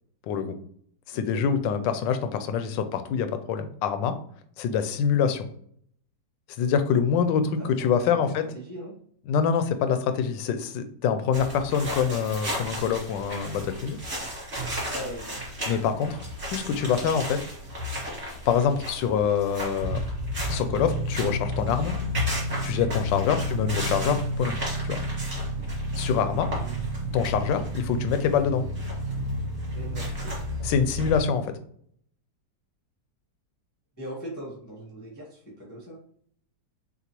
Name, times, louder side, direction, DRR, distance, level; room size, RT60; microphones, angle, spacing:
voice 1, 0.3-0.6 1.1-4.1 4.6-5.5 6.6-8.4 9.3-14.0 15.7-16.2 16.5-17.4 18.5-20.0 20.5-21.9 22.6-24.6 24.8-25.0 26.0-26.5 27.1-28.6 30.6-31.5, left 7 dB, 80° left, 9 dB, 1.2 m, -25 dB
voice 2, 1.1-1.4 7.5-8.9 14.8-15.4 23.2-23.4 26.6-26.8 29.7-30.4 34.0-36.0, equal, 15° left, -6 dB, 0.8 m, -40 dB
sound 1, 11.3-31.2, equal, 30° right, 1.8 m, -31 dB
6.7 x 2.4 x 2.9 m, 0.63 s
omnidirectional pair, 2.0 m